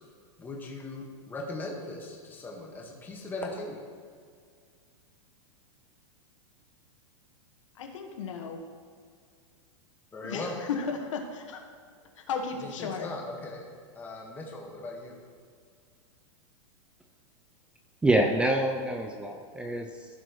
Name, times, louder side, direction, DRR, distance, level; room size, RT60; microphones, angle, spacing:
voice 1, 0.4-3.8 10.1-10.6 12.6-13.6 13.9-15.2, left 2 dB, 10° left, -1 dB, 1.5 m, -39 dB
voice 2, 7.7-8.6 10.2-11.6 12.2-13.1, left 5 dB, 80° left, 4 dB, 1.4 m, -34 dB
voice 3, 18.0-20.1, right 1 dB, 5° right, 3 dB, 0.4 m, -26 dB
15.5 x 6.0 x 3.1 m, 2.1 s
supercardioid pair, 145°, 16 cm